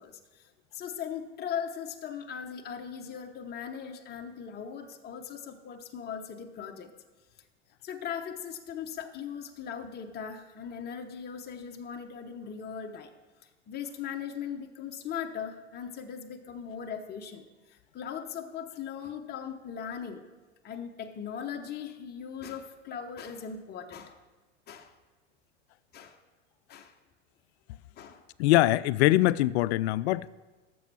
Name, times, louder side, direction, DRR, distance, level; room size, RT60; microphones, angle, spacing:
voice 1, 0.0-6.9 7.8-13.1 13.7-20.2 20.6-24.2 24.7-24.9 25.9-26.2 26.7-26.9 28.0-28.2, left 7 dB, 25° left, 0.9 m, -39 dB
voice 2, 28.4-30.3, left 16 dB, 65° left, 0.5 m, -23 dB
8.3 x 7.1 x 6.1 m
hypercardioid pair, 95°, 36 cm